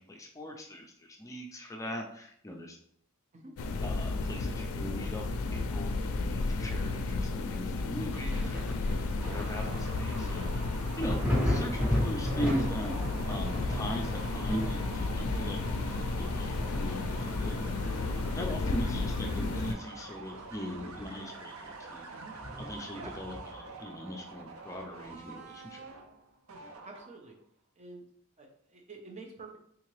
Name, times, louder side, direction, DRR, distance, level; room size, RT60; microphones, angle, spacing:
voice 1, 0.0-2.8 3.8-5.2 5.5-8.6 9.3-10.4 11.0-13.0 13.3-15.6 15.9-17.6 18.3-22.1 22.6-25.9, equal, 15° left, 2 dB, 0.4 m, -39 dB
sound 1, 3.6-19.7, left 3 dB, 85° left, 0.4 m, -33 dB
Thunder, 8.1-19.4 19.9-21.4 21.7-21.8 22.4-23.7 25.1-25.2, left 1 dB, 10° right, 1.5 m, -36 dB
sound 2, 9.2-27.3, right 3 dB, 75° right, 0.5 m, -46 dB
voice 2, 26.8-27.3 27.8-28.0 28.4-29.6, right 3 dB, 35° right, 2 dB, 0.7 m, -48 dB
3.6 x 2.8 x 3.1 m, 0.65 s
head